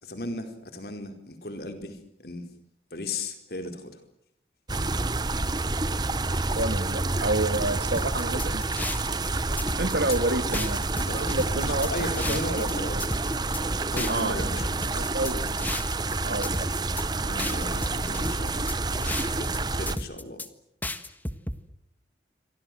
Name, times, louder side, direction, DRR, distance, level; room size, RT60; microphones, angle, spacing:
voice 1, 0.0-2.5 2.9-4.0 10.9-13.1 13.6-15.0 17.2-20.4, left 1 dB, 60° left, 7 dB, 4.7 m, -36 dB
sound 1, 4.7-20.0, right 2 dB, 25° right, 1.0 m, -28 dB
voice 2, 6.5-8.6 9.8-10.8 11.1-11.9 12.3-12.7 14.1-14.7 14.9-15.7 16.2-16.7, right 2 dB, 70° right, 11 dB, 2.1 m, -29 dB
sound 2, 8.0-9.3 9.6-10.2 10.5-12.7 13.0-13.6 14.0-16.1 16.4-17.0 17.4-19.6 19.9-20.5 20.8-21.6, left 1 dB, 10° left, 1.5 m, -33 dB
29.0 x 24.5 x 7.8 m, 0.75 s
head